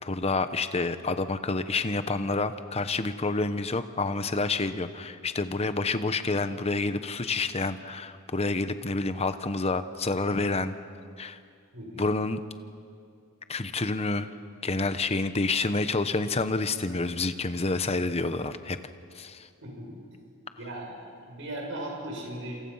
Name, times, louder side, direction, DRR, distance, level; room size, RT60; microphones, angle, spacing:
voice 1, 0.0-10.7 11.2-11.4 12.0-12.4 13.5-14.3 14.6-18.8 19.1-19.5, left 3 dB, 30° left, 11 dB, 0.9 m, -28 dB
voice 2, 11.7-12.0 19.6-19.9 20.6-21.0 21.2-22.6, right 1 dB, 60° right, 0 dB, 6.8 m, -37 dB
27.5 x 27.5 x 5.7 m, 2.4 s
head